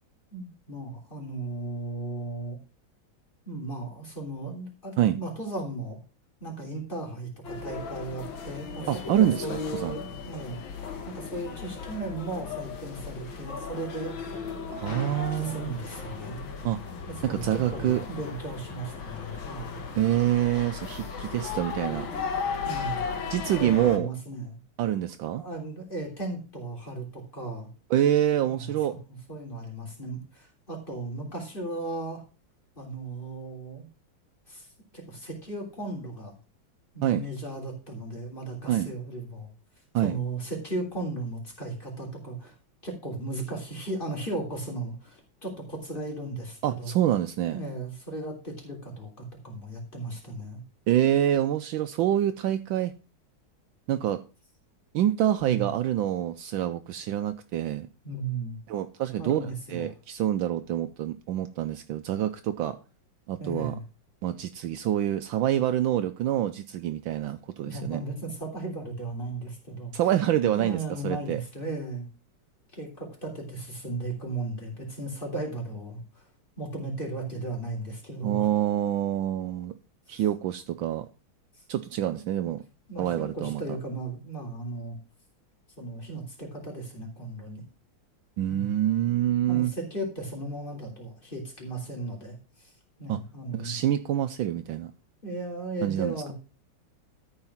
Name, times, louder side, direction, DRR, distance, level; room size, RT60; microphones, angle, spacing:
voice 1, 0.3-2.6 3.4-6.0 6.4-14.1 14.9-16.6 17.1-19.8 22.6-23.0 23.6-24.6 25.3-27.7 28.4-32.2 32.7-33.9 34.5-34.7 34.9-36.3 36.9-39.5 40.0-42.5 42.8-46.9 47.5-50.6 55.4-55.7 58.0-58.6 59.2-59.9 63.4-63.8 67.6-69.9 70.4-72.1 72.7-76.2 76.6-78.5 80.1-80.2 82.1-82.5 82.9-85.0 85.8-87.6 88.5-88.8 89.5-92.7 93.0-93.8 95.2-96.3, right 2 dB, 25° left, 3.6 m, -36 dB
sound 1, 7.4-24.0, left 5 dB, 75° left, 1.9 m, -36 dB
voice 2, 8.9-9.5 9.7-9.9 14.7-15.8 16.6-16.8 17.2-18.0 20.0-22.1 23.3-24.1 24.8-25.4 27.9-28.9 37.0-37.2 38.7-38.9 39.9-40.1 46.6-47.6 50.9-52.9 53.9-54.2 54.9-57.9 58.7-59.4 59.7-62.8 63.3-63.7 64.2-68.0 69.9-71.4 78.2-79.7 80.1-81.1 81.7-82.6 83.0-83.6 88.4-89.7 93.1-93.2 93.5-94.9 95.8-96.2, right 11 dB, 75° right, 1.3 m, -26 dB
13.0 x 4.8 x 5.6 m
omnidirectional pair, 2.2 m